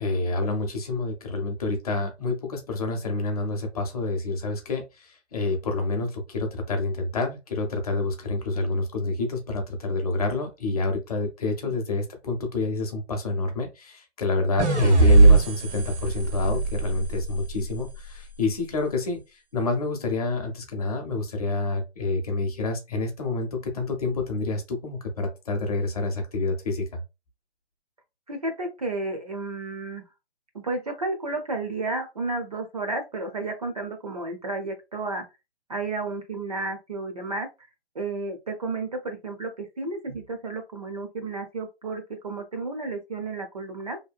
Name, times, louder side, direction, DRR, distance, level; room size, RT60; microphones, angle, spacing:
voice 1, 0.0-27.0, left 3 dB, 35° left, 0.6 m, -28 dB
sound 1, 14.6-17.8, right 2 dB, 85° right, 0.9 m, -19 dB
voice 2, 28.3-30.0 30.6-35.2 35.7-37.5 38.0-44.0, right 3 dB, 35° right, 0.4 m, -32 dB
2.7 x 2.1 x 2.4 m
hypercardioid pair, 150°, 34 cm